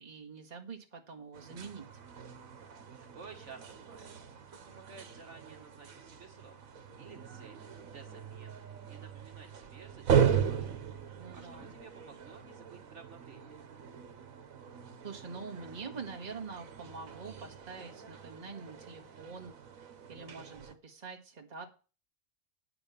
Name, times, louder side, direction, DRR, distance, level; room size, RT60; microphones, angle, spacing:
voice 1, 0.0-2.0 11.2-11.7 15.0-21.7, right 5 dB, 30° right, 1 dB, 1.8 m, -45 dB
sound 1, 1.3-20.8, right 8 dB, 80° right, 1.6 m, -37 dB
voice 2, 3.1-4.1 4.5-6.6 7.0-7.6 7.9-10.8 11.1-13.6, right 4 dB, 60° right, 3 dB, 1.8 m, -54 dB
9.8 x 5.9 x 7.0 m, 0.35 s
omnidirectional pair, 1.4 m